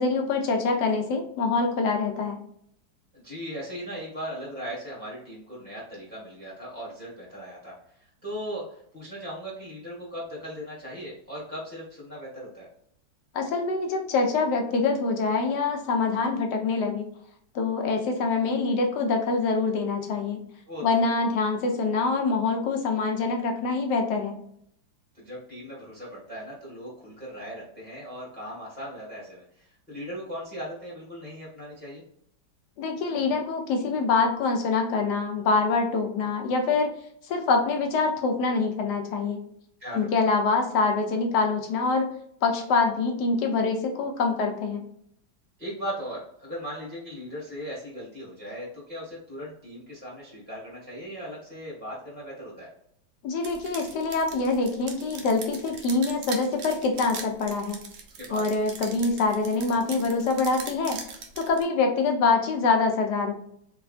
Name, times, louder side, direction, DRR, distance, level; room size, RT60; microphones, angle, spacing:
voice 1, 0.0-2.4 13.3-17.1 17.5-20.4 20.8-24.4 32.8-36.9 37.3-39.4 39.9-42.1 42.4-44.8 53.2-57.8 58.3-61.0 61.4-63.3, left 4 dB, 65° left, 3 dB, 1.2 m, -25 dB
voice 2, 3.1-12.7 20.7-20.8 25.1-32.0 39.8-40.3 45.6-52.7 58.2-58.4, equal, 5° left, -6 dB, 1.2 m, -38 dB
sound 1, 53.4-61.6, right 5 dB, 85° right, 0.6 m, -41 dB
4.1 x 3.5 x 2.4 m, 0.69 s
omnidirectional pair, 2.2 m